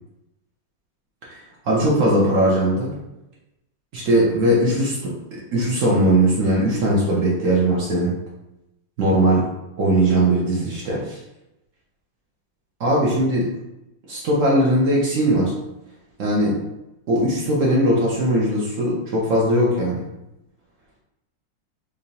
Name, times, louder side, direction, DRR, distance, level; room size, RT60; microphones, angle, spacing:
voice 1, 1.2-2.9 3.9-8.1 9.0-9.4 9.8-11.2 12.8-13.5 14.1-15.5 16.2-16.6 17.1-20.1, right 1 dB, 75° right, -4 dB, 0.7 m, -19 dB
4.8 x 2.6 x 2.7 m, 0.92 s
omnidirectional pair, 2.4 m